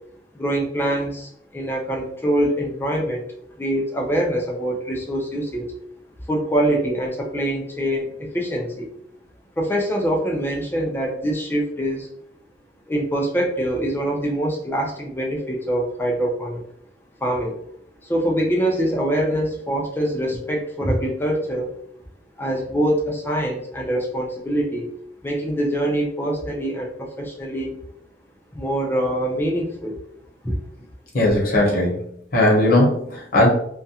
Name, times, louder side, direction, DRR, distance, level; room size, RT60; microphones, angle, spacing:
voice 1, 0.3-3.3 3.6-5.7 6.3-8.9 9.6-12.1 12.9-16.6 17.2-17.6 18.0-21.7 22.4-24.9 25.2-27.8 28.5-30.0 30.4-30.6, right 1 dB, 10° left, 0 dB, 0.4 m, -24 dB
voice 2, 31.1-32.0 32.3-33.5, left 1 dB, 55° left, -3 dB, 0.9 m, -18 dB
2.3 x 2.1 x 2.7 m, 0.71 s
head